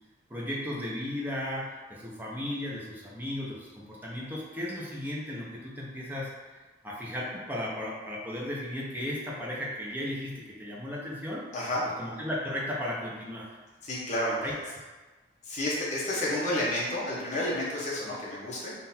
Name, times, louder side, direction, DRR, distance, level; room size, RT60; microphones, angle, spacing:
voice 1, 0.3-6.3 6.8-11.4 12.0-13.5 14.4-14.5, left 1 dB, 10° right, -5 dB, 0.7 m, -35 dB
voice 2, 13.8-14.4 15.4-18.7, left 1 dB, 35° left, -6 dB, 1.0 m, -30 dB
3.9 x 2.6 x 4.2 m, 1.3 s
head